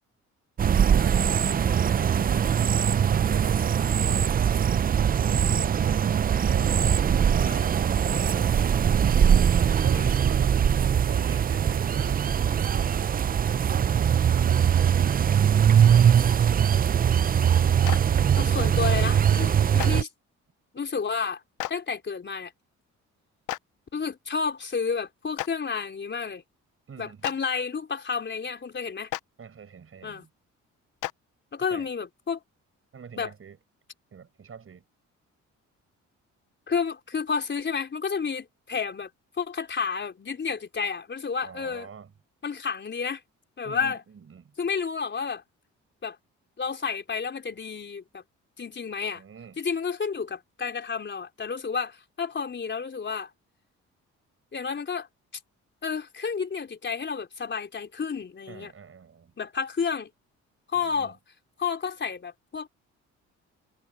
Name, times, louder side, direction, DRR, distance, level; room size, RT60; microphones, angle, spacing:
sound 1, 0.6-20.0, right 8 dB, 30° right, 0.4 m, -21 dB
voice 1, 1.8-4.3 5.3-6.0 6.5-6.8 7.1-8.6 9.0-9.4 9.7-10.6 11.0-12.2 14.1-14.6 15.9-16.6 26.9-27.3 29.4-30.3 31.7-31.9 32.9-33.6 34.1-34.8 41.4-42.1 43.6-44.5 49.1-49.6 58.5-59.3 60.8-61.1, right 6 dB, 45° right, 7.3 m, -44 dB
Clapping, 17.8-18.0 19.8-19.9 21.6-21.7 23.5-23.6 25.4-25.5 27.2-27.3 29.1-29.2 31.0-31.1, left 19 dB, 85° left, 0.5 m, -31 dB
voice 2, 18.4-20.1 20.7-21.4 21.7-22.5 23.9-26.4 27.0-29.1 30.0-30.3 31.5-32.4 33.2-33.3 36.7-39.1 39.4-41.9 42.4-43.2 43.6-44.0 44.6-45.4 46.0-46.2 46.6-48.2 48.6-49.2 49.6-53.3 54.5-55.1 55.8-58.7 59.4-60.1 60.7-61.2 61.6-62.7, left 5 dB, 40° left, 4.2 m, -31 dB
cardioid pair, 90°, 30 cm